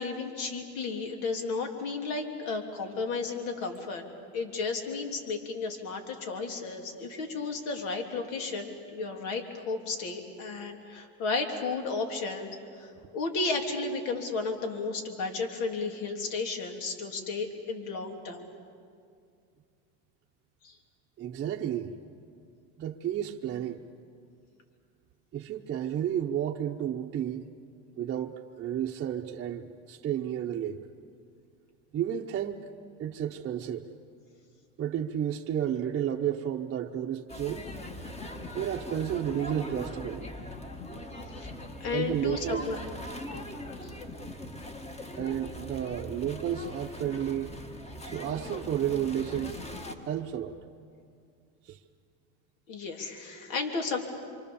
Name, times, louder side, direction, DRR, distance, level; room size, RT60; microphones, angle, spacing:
voice 1, 0.0-4.0 4.3-12.9 13.1-18.4 20.6-20.8 41.4-41.5 41.8-42.8 43.3-43.5 43.8-43.9 52.7-54.0, left 4 dB, 65° left, 4 dB, 3.2 m, -33 dB
voice 2, 21.2-21.9 22.8-23.8 25.3-27.5 28.0-30.8 31.9-32.7 33.0-33.9 34.8-37.7 38.5-40.3 41.9-42.6 45.2-47.5 48.0-49.6 50.1-50.6 51.7-51.8, right 10 dB, 35° right, -1 dB, 1.0 m, -32 dB
sound 1, 37.3-49.9, left 1 dB, 20° left, 1.7 m, -41 dB
27.0 x 24.5 x 7.1 m, 2.3 s
supercardioid pair, 125°, 33 cm